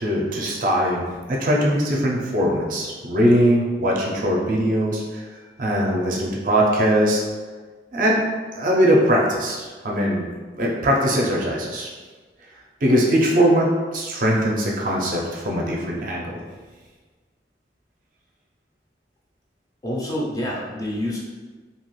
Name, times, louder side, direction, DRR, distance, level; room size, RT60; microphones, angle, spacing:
voice 1, 0.0-5.2 5.6-7.2 7.9-8.2 8.5-10.3 10.6-11.9 12.8-16.4, equal, 45° right, -2 dB, 0.5 m, -21 dB
voice 2, 19.8-21.2, left 1 dB, 20° left, -4 dB, 0.4 m, -27 dB
2.7 x 2.3 x 3.0 m, 1.4 s
head